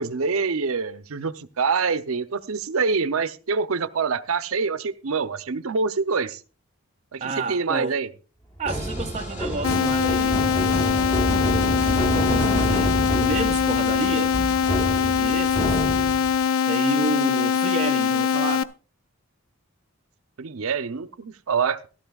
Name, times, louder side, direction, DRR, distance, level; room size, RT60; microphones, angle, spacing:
voice 1, 0.0-6.4 7.1-8.1 20.4-21.9, right 5 dB, 75° right, 0.6 m, -26 dB
voice 2, 7.2-8.0 8.6-10.8 11.9-14.4 15.0-15.8 16.7-18.7, right 3 dB, 30° right, 0.4 m, -30 dB
sound 1, 8.6-16.4, right 1 dB, 15° left, 1.1 m, -28 dB
sound 2, 8.7-15.6, left 1 dB, 35° left, 2.8 m, -38 dB
sound 3, 9.6-18.6, left 7 dB, 70° left, 0.5 m, -22 dB
15.5 x 12.0 x 2.4 m
head